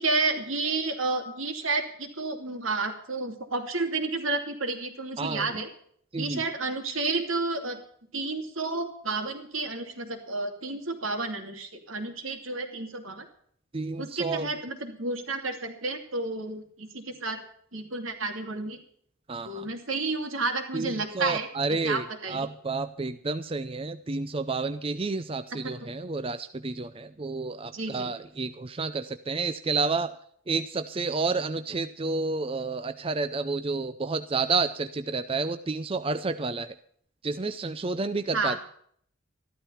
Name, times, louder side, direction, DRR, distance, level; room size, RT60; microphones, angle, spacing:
voice 1, 0.0-5.7 6.2-7.8 8.1-13.2 14.0-17.4 17.7-18.8 19.4-21.5 21.8-22.5 25.5-25.9 27.7-28.1 38.3-38.6, right 3 dB, 80° right, 5 dB, 2.7 m, -31 dB
voice 2, 5.2-5.5 6.1-6.4 13.7-14.5 19.3-19.7 20.7-30.1 30.5-36.8 37.2-38.6, right 3 dB, 25° right, 11 dB, 0.5 m, -30 dB
14.0 x 12.0 x 5.7 m, 0.64 s
head